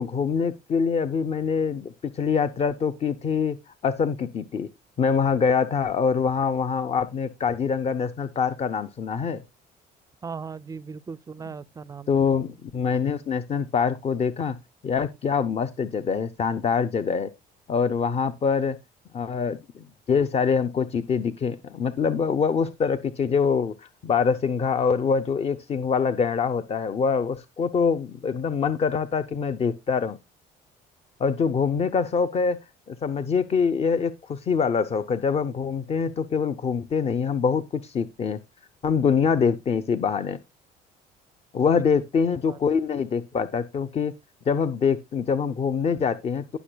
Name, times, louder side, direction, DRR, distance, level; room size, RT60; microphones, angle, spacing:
voice 1, 0.0-3.6 3.8-4.7 5.0-9.4 12.1-14.6 14.8-17.3 17.7-18.8 19.1-30.2 31.2-32.6 32.9-38.4 38.8-40.4 41.5-44.1 44.5-46.6, left 6 dB, 35° left, 0.7 m, -24 dB
voice 2, 10.2-12.4 41.6-42.0 42.4-42.6, right 5 dB, 20° right, 0.4 m, -38 dB
18.0 x 6.1 x 2.3 m
cardioid pair, 110°, 17 cm